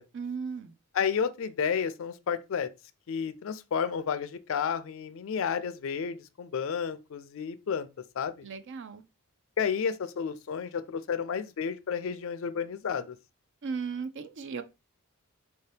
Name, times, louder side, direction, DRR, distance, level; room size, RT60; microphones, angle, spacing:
voice 1, 0.1-0.7 8.4-9.0 13.6-14.6, right 5 dB, 55° right, 0.5 m, -36 dB
voice 2, 0.9-2.7 3.1-7.9 8.2-8.4 9.6-13.1, left 6 dB, 65° left, 0.4 m, -31 dB
4.3 x 2.8 x 3.2 m
head